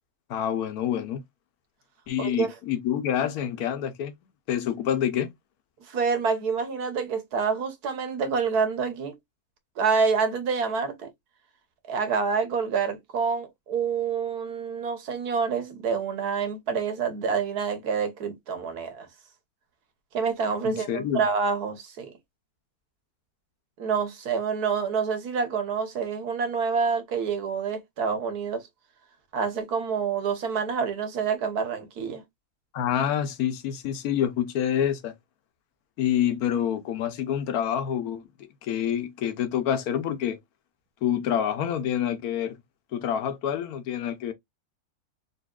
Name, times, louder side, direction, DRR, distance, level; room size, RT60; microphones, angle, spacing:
voice 1, 0.3-1.2 2.1-4.1 4.5-5.3 20.6-21.2 32.7-35.1 36.0-38.2 38.6-40.4 41.0-42.5 42.9-44.3, left 9 dB, 75° left, 1.2 m, -27 dB
voice 2, 2.2-2.5 5.9-9.1 9.8-11.1 11.9-19.1 20.1-22.1 23.8-28.6 29.3-32.2, right 5 dB, 85° right, 1.5 m, -27 dB
4.0 x 3.0 x 2.3 m
omnidirectional pair, 1.6 m